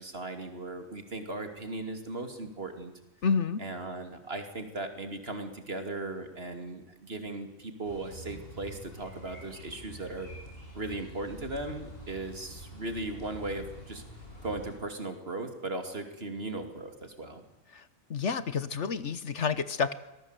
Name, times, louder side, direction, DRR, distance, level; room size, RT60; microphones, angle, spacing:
voice 1, 0.0-2.9 3.6-10.3 10.7-14.0 14.4-17.4, right 2 dB, 50° right, 7 dB, 3.0 m, -37 dB
voice 2, 3.2-3.6 18.1-19.9, left 5 dB, 60° left, 14 dB, 1.4 m, -29 dB
sound 1, 7.8-14.8, equal, 45° left, 6.4 m, -46 dB
25.0 x 18.5 x 8.2 m, 1.0 s
omnidirectional pair, 1.4 m